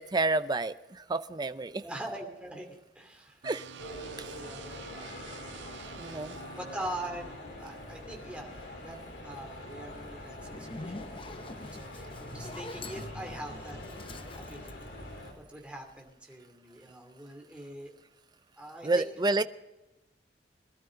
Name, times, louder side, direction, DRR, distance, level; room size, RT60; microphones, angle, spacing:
voice 1, 0.0-1.8 3.4-3.6 6.0-6.3 18.8-19.4, right 2 dB, 25° right, 12 dB, 0.5 m, -29 dB
voice 2, 1.8-3.4 3.7-5.4 6.6-13.8 14.2-17.9 18.6-19.0, right 1 dB, 5° right, 1 dB, 2.7 m, -43 dB
sound 1, 3.4-7.4, right 6 dB, 80° right, 0.6 m, -47 dB
sound 2, 3.8-15.3, left 1 dB, 70° left, 3.9 m, -44 dB
Zipper (clothing), 10.4-15.7, left 2 dB, 30° left, 0.8 m, -45 dB
21.0 x 12.5 x 3.8 m, 1.0 s
head